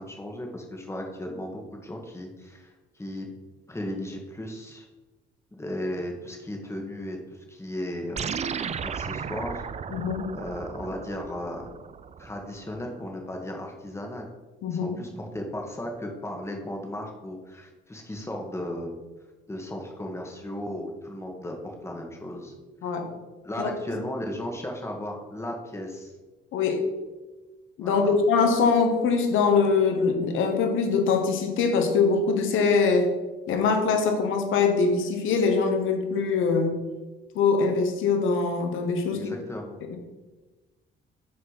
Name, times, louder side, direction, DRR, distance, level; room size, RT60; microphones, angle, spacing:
voice 1, 0.0-3.2 3.7-4.9 5.5-8.3 8.6-9.7 10.3-11.6 12.2-14.3 14.7-18.9 19.5-22.5 22.8-22.9 23.4-26.1 27.8-28.2 39.1-39.8, left 1 dB, 15° left, 1 dB, 1.5 m, -35 dB
sound 1, 8.2-12.8, right 7 dB, 35° right, 0.4 m, -35 dB
voice 2, 9.9-10.3 14.6-15.0 22.8-23.1 23.6-23.7 26.5-26.8 27.8-33.1 33.5-36.8 37.3-39.3 39.9-40.0, left 4 dB, 85° left, 5 dB, 1.1 m, -23 dB
6.2 x 4.4 x 5.7 m, 1.2 s
cardioid pair, 90°, 20 cm